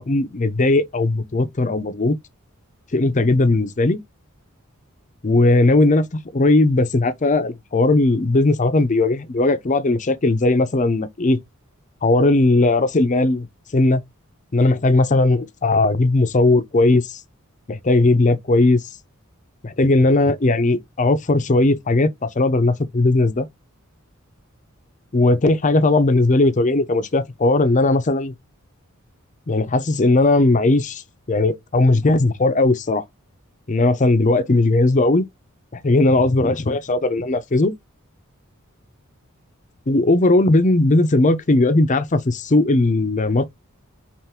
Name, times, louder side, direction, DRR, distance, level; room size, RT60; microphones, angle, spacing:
voice 1, 0.0-2.2 2.9-4.0 5.2-11.4 12.0-13.5 13.7-14.0 14.5-17.2 17.7-18.8 19.6-23.5 25.1-28.3 29.5-31.0 31.3-33.0 33.7-35.2 35.7-37.7 39.9-43.4, left 2 dB, 35° left, 0.6 m, -18 dB
5.6 x 2.5 x 3.6 m
head